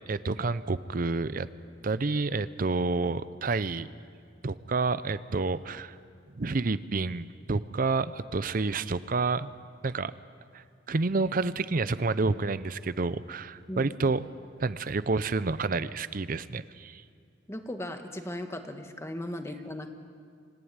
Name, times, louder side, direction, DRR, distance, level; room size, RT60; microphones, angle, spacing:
voice 1, 0.1-1.5 1.8-3.9 4.4-5.9 6.4-9.5 9.8-10.1 10.5-14.2 14.6-17.0, right 3 dB, 45° right, 15 dB, 0.6 m, -29 dB
voice 2, 17.5-19.9, left 1 dB, 15° left, 6 dB, 1.4 m, -37 dB
26.0 x 14.5 x 9.6 m, 2.3 s
head